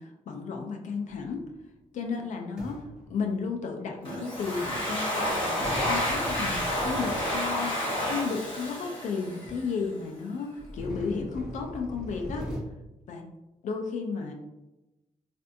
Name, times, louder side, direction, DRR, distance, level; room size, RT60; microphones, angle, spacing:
voice 1, 0.0-1.5 1.9-12.5 13.1-13.3 13.6-14.3, left 5 dB, 65° left, 3 dB, 0.5 m, -33 dB
sound 1, 1.0-1.7 2.6-3.8 5.6-7.7 8.5-8.6 9.1-9.2 9.4-9.8 10.6-12.6, equal, 5° right, 0.8 m, -40 dB
Domestic sounds home sounds, 4.0-9.7, left 1 dB, 40° left, 1.5 m, -30 dB
3.3 x 2.5 x 2.6 m, 0.98 s
wide cardioid pair, 160°, 13 cm